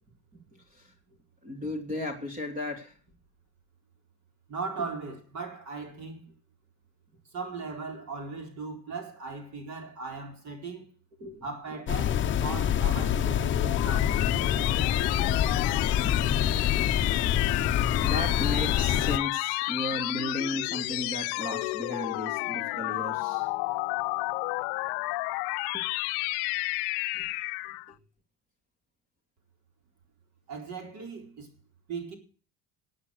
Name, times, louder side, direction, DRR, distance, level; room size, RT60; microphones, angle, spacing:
voice 1, 0.3-0.9 1.4-2.9 11.2-11.4 16.0-16.1 16.5-16.6 18.0-23.5 25.7-25.9 27.1-27.3 27.6-27.8, left 1 dB, 20° right, 3.1 m, -35 dB
voice 2, 4.5-6.2 7.3-10.9 11.4-14.2 30.5-31.5 31.9-32.1, right 4 dB, 45° right, 4.2 m, -38 dB
sound 1, 11.9-19.2, left 10 dB, 30° left, 0.8 m, -26 dB
sound 2, 13.2-27.9, left 24 dB, 80° left, 0.6 m, -31 dB
16.0 x 8.8 x 6.6 m
cardioid pair, 155°, 38 cm